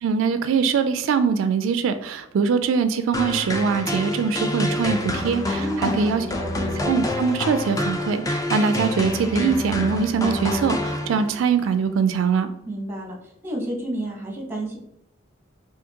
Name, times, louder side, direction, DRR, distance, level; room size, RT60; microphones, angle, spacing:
voice 1, 0.0-6.2 6.8-12.5, right 6 dB, 80° right, 10 dB, 0.3 m, -22 dB
sound 1, 3.1-11.5, left 1 dB, 20° left, 0.4 m, -27 dB
voice 2, 5.6-6.5 12.7-13.2 13.4-14.8, right 1 dB, 10° right, 0 dB, 0.9 m, -30 dB
5.0 x 2.6 x 2.8 m, 0.79 s
head